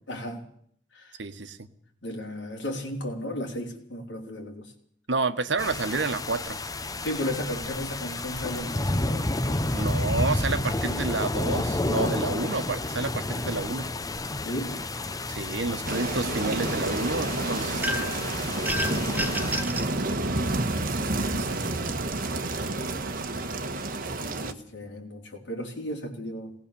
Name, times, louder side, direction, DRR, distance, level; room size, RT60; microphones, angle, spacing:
voice 1, 0.1-0.4 0.9-1.1 2.0-4.7 7.0-9.9 14.4-14.8 19.1-19.4 24.2-26.5, left 1 dB, 65° left, 1 dB, 4.1 m, -35 dB
voice 2, 1.2-1.7 5.1-6.6 9.7-13.9 15.3-18.1 21.1-21.7, right 3 dB, 70° right, 11 dB, 1.3 m, -30 dB
sound 1, 5.6-19.6, left 2 dB, 20° left, 0.7 m, -30 dB
sound 2, 15.8-24.5, right 2 dB, 50° right, 1.5 m, -29 dB
sound 3, 17.8-18.2 18.7-19.9, equal, 10° right, 1.0 m, -30 dB
19.0 x 19.0 x 7.0 m, 0.63 s
head